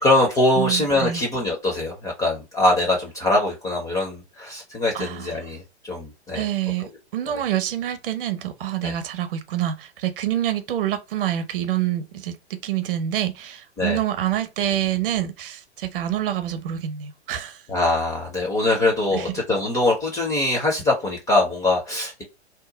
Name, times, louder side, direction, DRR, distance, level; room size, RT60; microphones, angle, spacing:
voice 1, 0.0-6.4 8.8-8.9 13.8-14.0 17.7-22.2, left 2 dB, 10° left, 0.4 m, -22 dB
voice 2, 0.6-1.2 4.9-5.4 6.3-17.6 19.1-19.3, right 11 dB, 50° right, 0.7 m, -27 dB
2.8 x 2.1 x 3.8 m
figure-of-eight pair, 115°, 34 cm